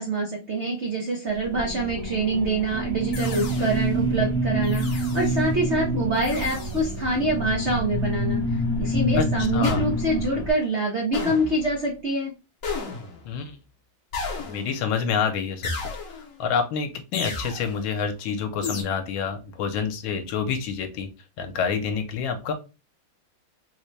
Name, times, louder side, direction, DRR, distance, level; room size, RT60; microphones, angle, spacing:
voice 1, 0.0-12.3, right 2 dB, 90° right, -2 dB, 0.6 m, -25 dB
sound 1, 1.3-10.5, equal, 5° left, 0.7 m, -27 dB
sound 2, 3.1-3.9 4.6-5.4 6.1-6.9 9.6-10.3 11.1-11.8 12.6-13.3 14.1-14.9 15.6-16.4 17.1-17.8 18.6-18.8, left 4 dB, 60° left, 0.9 m, -34 dB
voice 2, 9.5-9.8 13.3-13.5 14.4-15.7 16.4-21.1 21.4-22.5, left 6 dB, 75° left, 7 dB, 1.4 m, -27 dB
4.2 x 2.1 x 3.1 m, 0.29 s
omnidirectional pair, 2.2 m